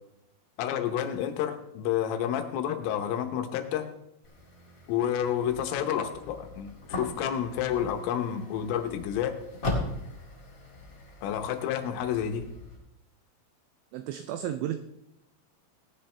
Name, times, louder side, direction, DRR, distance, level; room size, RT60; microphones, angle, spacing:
voice 1, 0.6-3.9 4.9-9.4 11.2-12.4, left 9 dB, 80° left, 6 dB, 3.4 m, -30 dB
sound 1, 4.2-12.8, left 2 dB, 60° left, 0.8 m, -39 dB
voice 2, 13.9-14.8, right 11 dB, 90° right, 8 dB, 2.6 m, -33 dB
18.0 x 10.0 x 3.3 m, 0.81 s
omnidirectional pair, 6.0 m